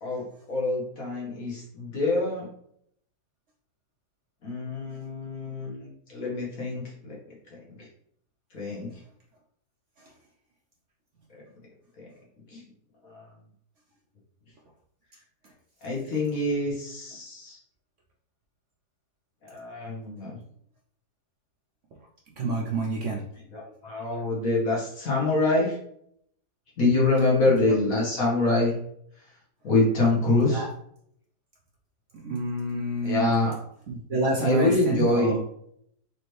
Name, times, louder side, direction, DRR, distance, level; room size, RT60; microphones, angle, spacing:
voice 1, 0.0-2.5 4.4-7.2 7.5-7.9 8.5-8.9 11.3-11.4 12.0-12.1 12.5-12.6 13.0-13.3 15.8-17.6 19.4-20.4 23.5-25.8 26.8-28.7 29.6-30.7 33.0-33.5 34.4-35.4, left 2 dB, 60° left, -4 dB, 1.7 m, -25 dB
voice 2, 22.4-23.3 27.6-27.7 30.3-30.7 32.2-33.3 33.9-35.4, right 2 dB, 60° right, -1 dB, 0.8 m, -28 dB
4.1 x 3.1 x 3.2 m, 0.69 s
omnidirectional pair, 1.7 m